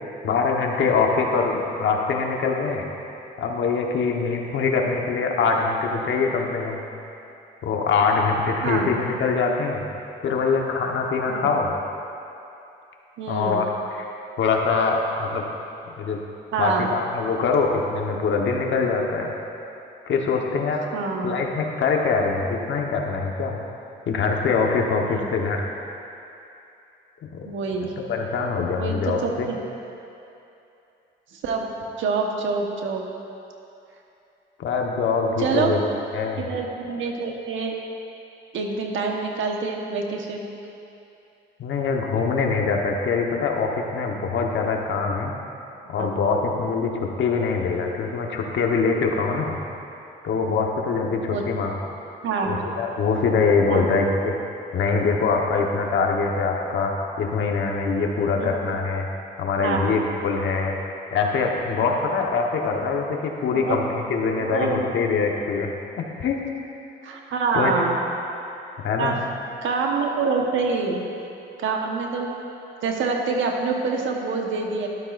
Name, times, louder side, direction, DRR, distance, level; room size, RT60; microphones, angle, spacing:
voice 1, 0.2-2.9 3.4-6.8 7.6-9.8 10.2-11.7 13.3-14.1 14.4-15.5 16.0-16.2 16.6-19.3 20.1-20.8 21.2-23.6 24.1-25.6 27.2-27.3 28.1-29.5 34.6-36.4 41.6-45.3 45.9-46.9 47.2-49.6 50.2-51.7 52.5-54.3 54.7-56.9 57.2-59.1 59.4-60.8 61.1-65.7 66.0-66.5 67.5-67.7 68.8-69.2, left 4 dB, 70° left, 0 dB, 1.3 m, -23 dB
voice 2, 13.2-13.6 16.5-16.9 20.9-21.4 25.0-25.2 27.4-27.9 28.8-29.6 31.3-31.7 32.0-33.1 35.4-36.0 36.4-37.8 38.5-40.5 45.9-46.1 51.3-51.4 52.2-52.6 53.7-53.8 58.4-58.5 59.6-59.9 63.5-63.8 64.4-64.8 67.0-68.0 69.0-69.2 69.6-71.0 71.6-72.3 72.8-74.9, right 4 dB, 75° right, 1 dB, 1.3 m, -26 dB
13.0 x 12.0 x 2.6 m, 2.8 s
cardioid pair, 90°, 20 cm